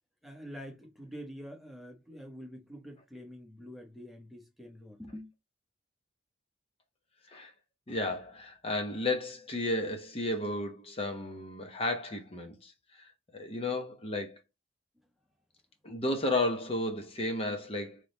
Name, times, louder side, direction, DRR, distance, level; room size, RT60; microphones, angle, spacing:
voice 1, 0.2-5.3, equal, ahead, 1.1 m, -46 dB
voice 2, 7.9-14.4 15.8-18.0, left 2 dB, 30° left, 0.9 m, -33 dB
3.8 x 3.2 x 3.9 m
head